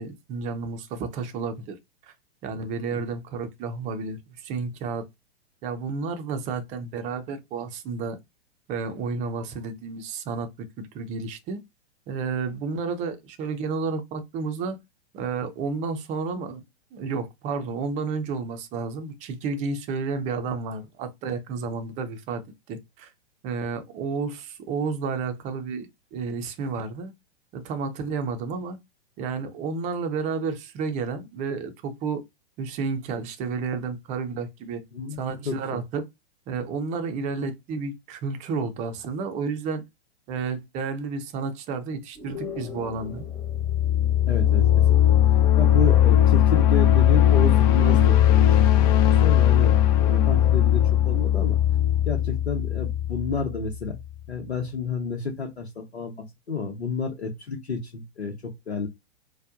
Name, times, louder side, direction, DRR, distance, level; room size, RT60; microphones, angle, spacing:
voice 1, 0.0-1.8 2.4-5.0 5.6-8.2 8.7-11.6 12.1-14.8 15.1-16.6 16.9-22.4 22.7-23.1 23.4-27.1 27.5-28.8 29.2-32.2 32.6-34.8 35.1-36.1 36.5-39.8 40.3-43.2, right 4 dB, 25° right, 0.6 m, -31 dB
voice 2, 35.4-35.8 44.3-45.0 45.5-51.6 52.1-54.0 54.3-58.3 58.7-58.9, left 4 dB, 85° left, 0.9 m, -30 dB
sound 1, 42.1-45.1, left 7 dB, ahead, 1.5 m, -41 dB
sound 2, 43.2-54.0, left 11 dB, 35° left, 0.5 m, -19 dB
4.3 x 2.3 x 2.5 m
figure-of-eight pair, 110°, 32 cm